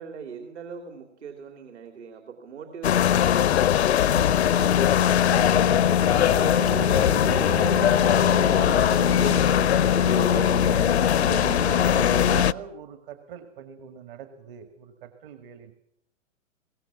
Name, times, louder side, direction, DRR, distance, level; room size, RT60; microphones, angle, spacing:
voice 1, 0.0-3.7 4.1-6.1 6.5-10.6, right 6 dB, 60° right, 4 dB, 2.9 m, -41 dB
sound 1, 2.8-12.5, left 10 dB, 55° left, 0.7 m, -20 dB
sound 2, 4.3-12.4, right 8 dB, 20° right, 0.8 m, -34 dB
voice 2, 11.2-15.7, right 9 dB, 40° right, 8 dB, 1.8 m, -41 dB
22.5 x 17.5 x 7.0 m, 0.79 s
figure-of-eight pair, 110°, 39 cm